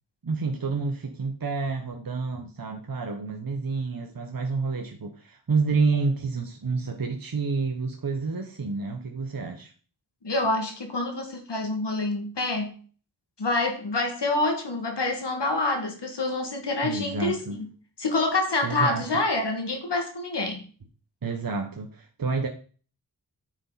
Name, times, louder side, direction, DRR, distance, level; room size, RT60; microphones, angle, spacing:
voice 1, 0.2-9.7 16.8-17.6 18.6-19.0 21.2-22.5, right 4 dB, 55° right, 1.2 m, -29 dB
voice 2, 10.2-12.8 13.4-17.7 18.0-20.6, left 2 dB, 80° left, 2.1 m, -27 dB
9.5 x 6.4 x 4.1 m
wide cardioid pair, 50°, 41 cm